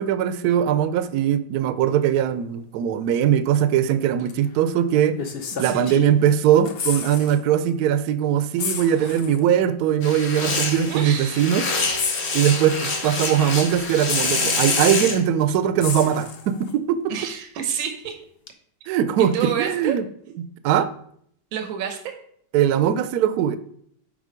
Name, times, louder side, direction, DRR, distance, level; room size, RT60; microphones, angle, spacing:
voice 1, 0.0-5.2 5.6-11.7 12.3-17.0 18.9-20.0 20.6-20.9 22.5-23.6, right 9 dB, 70° right, 12 dB, 0.9 m, -20 dB
sound 1, 4.3-4.4 5.2-6.3 6.5-7.4 7.7-7.8 8.6-9.4 10.5-10.6 11.9-13.0 14.1-15.0 15.8-16.7 18.5-18.6, left 6 dB, 85° left, 0.5 m, -31 dB
voice 2, 5.6-6.0 9.0-9.2 10.9-11.5 12.3-12.4 17.1-18.2 19.3-20.0 21.5-22.1, right 8 dB, 90° right, 5 dB, 1.6 m, -29 dB
sound 2, 10.0-15.2, left 3 dB, 40° left, 1.1 m, -26 dB
9.1 x 3.8 x 5.0 m, 0.66 s
omnidirectional pair, 2.1 m